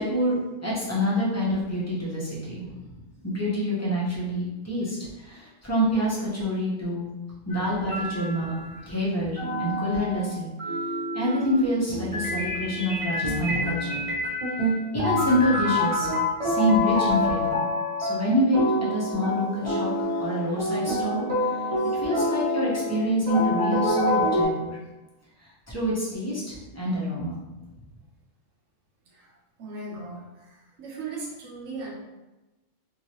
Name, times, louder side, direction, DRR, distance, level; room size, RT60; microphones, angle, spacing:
voice 1, 0.0-2.9 3.2-7.1 7.5-10.5 11.1-14.0 14.9-16.1 16.4-17.7 18.0-18.6 18.9-21.3 21.9-24.8 25.7-27.4, equal, 15° left, -7 dB, 0.8 m, -27 dB
sound 1, 7.5-8.7 9.4-24.4, left 1 dB, 30° right, 0.9 m, -27 dB
voice 2, 29.6-32.0, right 3 dB, 90° right, -2 dB, 1.2 m, -38 dB
3.1 x 2.9 x 2.8 m, 1.1 s
omnidirectional pair, 1.3 m